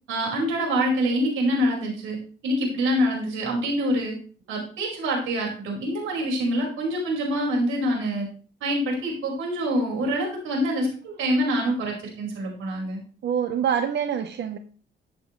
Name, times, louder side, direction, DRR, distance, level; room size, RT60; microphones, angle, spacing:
voice 1, 0.1-2.2 2.4-4.2 4.5-8.3 8.6-13.0, equal, 85° right, 5.2 m, -25 dB
voice 2, 13.2-14.6, right 8 dB, 60° right, 1.0 m, -25 dB
14.0 x 7.9 x 3.2 m
cardioid pair, 90°, 20 cm